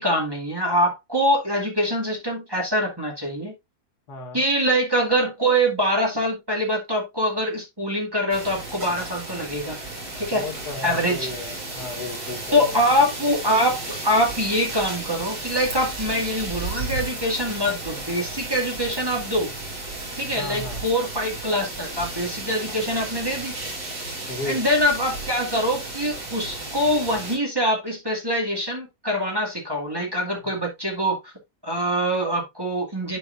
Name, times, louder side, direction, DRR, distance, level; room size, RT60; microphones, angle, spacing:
voice 1, 0.0-3.5 4.3-9.8 10.2-10.5 10.8-11.3 12.5-19.5 20.2-23.5 24.5-31.3 31.6-33.2, equal, 15° right, 2.1 m, -24 dB
voice 2, 4.1-4.5 10.3-12.8 20.4-20.8 24.3-24.6, left 2 dB, 75° left, 2.0 m, -34 dB
sound 1, 8.3-27.4, right 2 dB, 75° right, 3.3 m, -34 dB
11.0 x 4.6 x 2.5 m
omnidirectional pair, 1.7 m